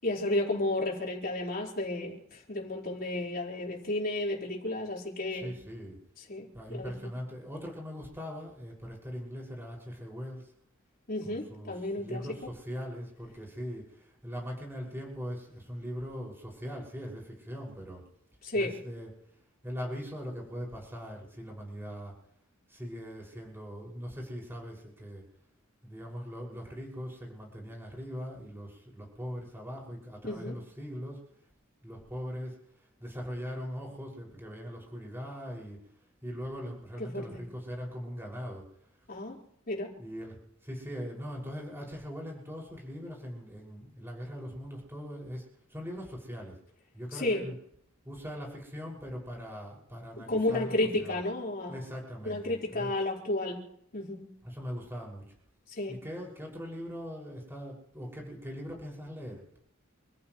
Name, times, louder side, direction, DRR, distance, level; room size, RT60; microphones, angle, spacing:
voice 1, 0.0-5.5 6.3-6.9 11.1-12.3 18.4-18.7 30.2-30.6 37.0-37.3 39.1-39.4 39.7-39.9 47.1-47.4 50.2-51.7 52.2-53.6 53.9-54.2 55.8-56.0, left 2 dB, 45° left, -2 dB, 4.8 m, -32 dB
voice 2, 5.3-6.0 6.5-10.5 11.2-18.0 18.5-19.1 19.6-22.1 22.7-25.2 25.8-31.2 31.8-35.8 36.2-38.7 40.0-46.6 46.9-47.5 48.0-51.2 51.7-52.9 54.4-55.3 55.9-59.6, equal, 10° right, -1 dB, 6.3 m, -41 dB
28.5 x 15.0 x 3.2 m, 0.71 s
head